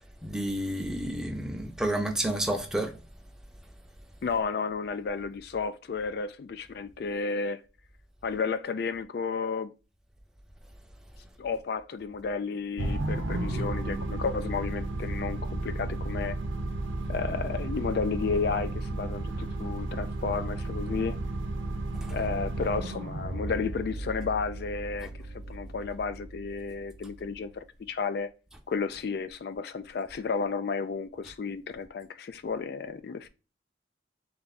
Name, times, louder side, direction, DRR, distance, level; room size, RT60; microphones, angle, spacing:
voice 1, 0.2-2.9 22.0-22.2 25.0-25.1, right 1 dB, 5° right, 0.6 m, -30 dB
voice 2, 4.2-7.6 8.2-9.7 11.4-16.4 17.1-21.2 22.1-28.3 28.7-33.3, left 5 dB, 55° left, 0.3 m, -32 dB
sound 1, 12.8-27.3, right 2 dB, 85° right, 0.7 m, -34 dB
3.5 x 3.3 x 4.1 m
head